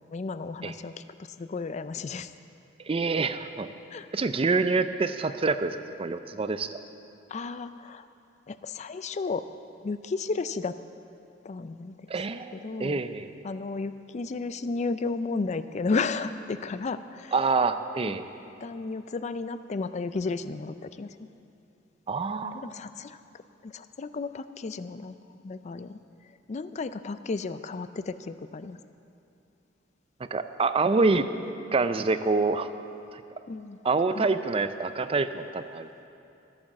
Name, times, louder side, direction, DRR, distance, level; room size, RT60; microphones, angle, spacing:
voice 1, 0.1-2.3 3.9-4.1 7.3-8.1 8.5-9.5 9.8-10.8 11.4-12.1 12.6-13.0 13.4-17.3 18.6-21.3 22.4-23.2 23.6-26.0 26.5-28.8 33.5-33.8 34.1-34.2, left 4 dB, 35° left, 12 dB, 0.4 m, -33 dB
voice 2, 2.9-3.7 4.1-6.8 12.1-13.3 17.3-18.3 22.1-22.7 30.3-31.3 31.7-32.7 33.1-33.2 33.8-35.9, right 3 dB, 30° right, 11 dB, 0.4 m, -26 dB
13.5 x 8.7 x 7.2 m, 2.7 s
head